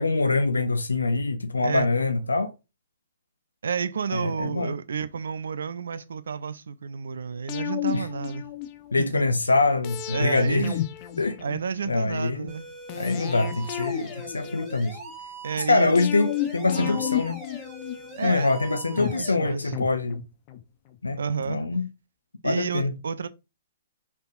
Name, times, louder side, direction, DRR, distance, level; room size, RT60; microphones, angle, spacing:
voice 1, 0.0-2.5 4.1-4.7 7.9-8.0 8.9-10.7 11.2-11.4 11.8-12.5 12.9-15.0 15.7-17.4 18.2-20.2 21.0-21.2 21.5-21.9 22.4-22.9, left 3 dB, 85° left, 0.4 m, -24 dB
voice 2, 3.6-8.5 9.0-9.3 10.1-10.8 11.4-12.7 13.9-14.1 15.4-15.9 16.8-17.0 18.2-19.8 21.2-21.6 22.4-23.3, right 6 dB, 70° right, 0.4 m, -31 dB
sound 1, 7.5-9.1 9.8-12.0 12.9-15.1 16.0-18.3 19.0-20.6 20.9-21.0, left 12 dB, 40° left, 0.6 m, -33 dB
sound 2, 12.5-19.3, right 2 dB, 15° right, 1.8 m, -42 dB
4.2 x 3.5 x 2.5 m
figure-of-eight pair, 120°, 0 cm